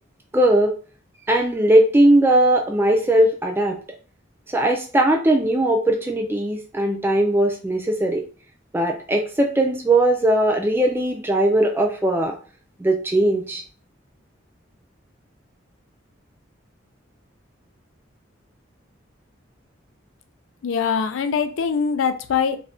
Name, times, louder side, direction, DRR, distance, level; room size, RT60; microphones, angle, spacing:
voice 1, 0.3-0.8 1.3-3.8 4.5-8.2 8.7-12.3 12.8-13.6, right 1 dB, 10° right, 0.3 m, -19 dB
voice 2, 20.6-22.6, left 6 dB, 80° left, 0.4 m, -22 dB
2.5 x 2.2 x 3.4 m
head